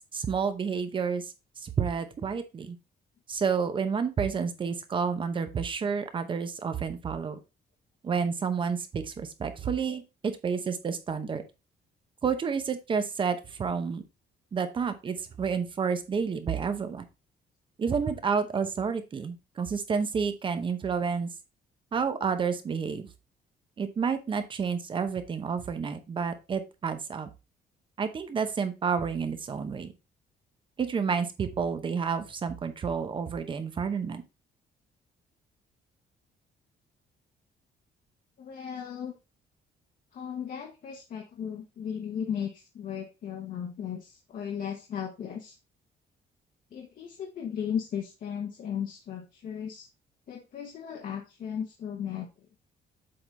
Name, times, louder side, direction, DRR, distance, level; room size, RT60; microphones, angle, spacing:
voice 1, 0.1-2.8 3.3-7.4 8.0-11.4 12.2-14.0 14.5-17.0 17.8-21.3 21.9-23.1 23.8-27.3 28.0-29.9 30.8-34.2, right 6 dB, 30° right, 9 dB, 0.8 m, -30 dB
voice 2, 38.4-39.1 40.1-45.6 46.7-49.9 50.3-52.3, left 8 dB, 50° left, 2 dB, 1.1 m, -36 dB
7.8 x 3.9 x 4.0 m, 0.27 s
cardioid pair, 175°, 18 cm